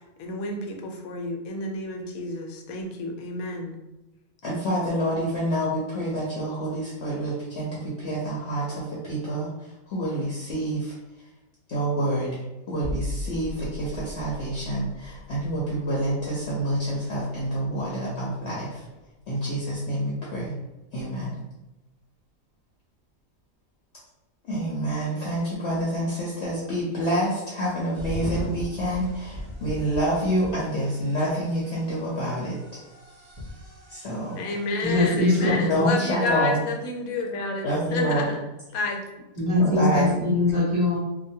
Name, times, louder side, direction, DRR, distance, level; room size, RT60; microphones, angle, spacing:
voice 1, 0.2-3.8 34.4-38.4 38.7-39.0, left 2 dB, 85° left, 1 dB, 1.1 m, -30 dB
voice 2, 4.4-9.5 9.9-10.9 11.7-12.4 12.7-18.8 19.3-20.6 20.9-21.4 24.4-32.6 33.9-34.4 35.5-36.6 37.6-38.3 39.6-40.1, right 1 dB, 60° left, -5 dB, 0.8 m, -27 dB
sound 1, 12.8-18.5 18.8-19.0, left 1 dB, 55° right, 0.7 m, -38 dB
sound 2, 27.9-35.9, left 1 dB, 70° right, 1.1 m, -39 dB
voice 3, 34.8-35.9 39.4-41.0, left 2 dB, 25° right, -13 dB, 1.2 m, -22 dB
2.9 x 2.1 x 2.6 m, 1.0 s
omnidirectional pair, 1.4 m